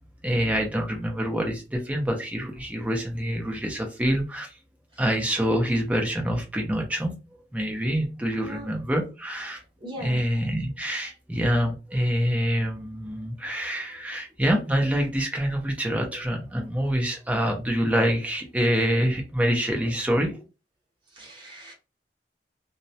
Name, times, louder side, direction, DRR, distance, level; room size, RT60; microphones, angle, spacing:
voice 1, 0.2-4.6 5.0-7.1 7.5-9.6 10.0-20.4, equal, 10° right, 2 dB, 0.6 m, -26 dB
voice 2, 8.3-8.8 9.8-10.2 21.1-21.7, right 1 dB, 30° right, -3 dB, 0.9 m, -39 dB
2.3 x 2.0 x 2.7 m, 0.29 s
head